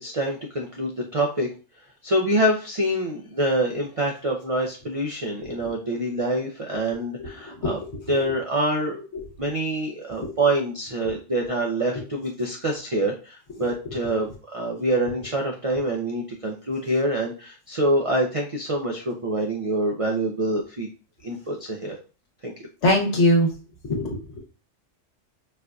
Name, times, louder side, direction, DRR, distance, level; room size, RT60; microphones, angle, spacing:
voice 1, 0.0-1.5 2.0-7.8 8.1-9.0 9.4-20.9 21.2-22.0 22.4-22.5, right 1 dB, 55° right, 0 dB, 0.4 m, -26 dB
voice 2, 7.2-8.0 9.1-9.2 10.2-10.3 11.0-11.1 11.9-12.0 13.6-13.9 22.8-23.5 23.8-24.4, left 1 dB, 65° left, 0 dB, 1.3 m, -24 dB
4.3 x 2.5 x 2.3 m, 0.35 s
omnidirectional pair, 1.3 m